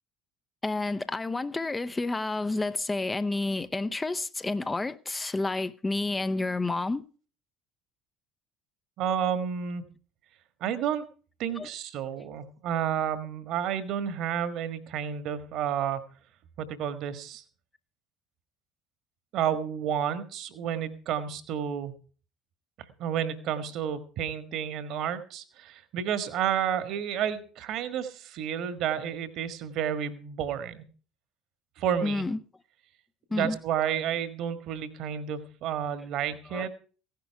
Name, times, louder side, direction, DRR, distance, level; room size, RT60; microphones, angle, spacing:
voice 1, 0.6-7.0 11.6-11.7 12.2-12.3 32.0-32.4 33.3-33.6 36.4-36.7, left 2 dB, 15° left, 0.7 m, -30 dB
voice 2, 9.0-9.8 10.6-11.1 11.4-16.0 16.6-17.4 19.3-21.9 23.0-30.8 31.8-32.2 33.3-36.7, right 9 dB, 50° right, 1.5 m, -31 dB
16.0 x 10.5 x 4.7 m
figure-of-eight pair, 60°, 0 cm